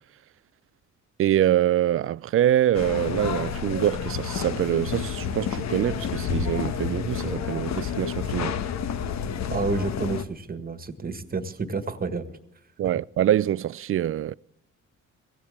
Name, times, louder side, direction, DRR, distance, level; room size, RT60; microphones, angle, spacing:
voice 1, 1.2-8.6 12.8-14.3, right 12 dB, 45° right, 0.4 m, -24 dB
sound 1, 2.7-10.2, left 7 dB, 65° left, 1.1 m, -30 dB
voice 2, 9.5-12.2, right 4 dB, 30° right, 1.6 m, -30 dB
16.5 x 15.5 x 3.6 m
cardioid pair, 90°, 30 cm